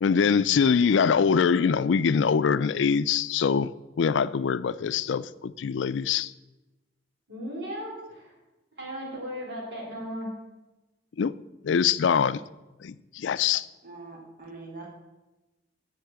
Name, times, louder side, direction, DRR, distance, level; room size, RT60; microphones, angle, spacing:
voice 1, 0.0-3.7 4.0-6.3 11.2-11.3 11.6-12.4 12.8-13.7, left 6 dB, 80° left, 0.4 m, -23 dB
voice 2, 7.3-8.3 8.8-10.3, equal, 65° right, 4.2 m, -36 dB
voice 3, 13.8-14.9, right 3 dB, 50° right, 1.9 m, -43 dB
8.2 x 6.6 x 7.9 m
head